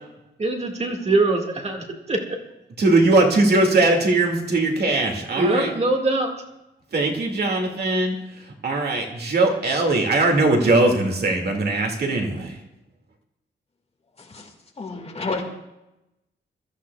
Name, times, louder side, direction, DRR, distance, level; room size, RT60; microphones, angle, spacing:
voice 1, 0.4-2.2 5.4-6.3, right 2 dB, 35° right, 3 dB, 1.9 m, -22 dB
voice 2, 2.8-5.7 6.9-8.2 8.6-12.5, right 2 dB, 55° right, 2 dB, 2.3 m, -20 dB
voice 3, 14.2-14.5 14.8-15.4, left 3 dB, 30° left, 2 dB, 2.0 m, -30 dB
22.5 x 13.5 x 2.4 m, 0.92 s
wide cardioid pair, 135°, 20 cm